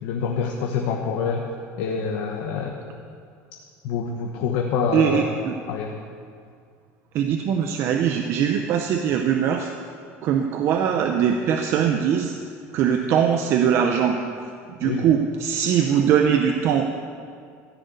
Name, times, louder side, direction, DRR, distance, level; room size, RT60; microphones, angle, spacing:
voice 1, 0.0-1.4 1.8-2.7 3.8-5.2 5.7-6.0 14.8-15.0, left 6 dB, 70° left, 0 dB, 1.2 m, -26 dB
voice 2, 4.9-5.6 7.1-9.7 10.2-12.4 12.7-14.2 14.8-16.9, right 8 dB, 45° right, 5 dB, 0.7 m, -21 dB
14.5 x 6.5 x 8.0 m, 2.2 s
cardioid pair, 160°, 6 cm